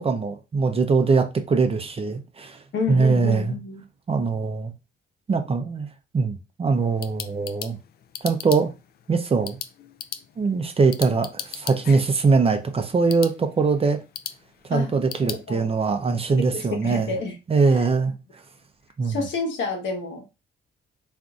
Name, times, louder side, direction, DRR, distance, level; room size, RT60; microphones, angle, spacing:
voice 1, 0.0-2.6 2.9-3.6 4.1-4.7 5.3-5.9 6.1-7.8 8.2-8.7 9.1-9.6 10.4-14.0 14.7-17.2 17.5-18.1 19.0-19.2, right 4 dB, 30° right, 0.6 m, -22 dB
voice 2, 2.7-3.8 14.7-14.9 15.2-15.7 16.4-17.3 19.0-20.2, left 4 dB, 70° left, 1.1 m, -29 dB
sound 1, 6.7-15.4, left 9 dB, 50° left, 0.4 m, -39 dB
3.7 x 2.6 x 2.4 m
cardioid pair, 90°, 20 cm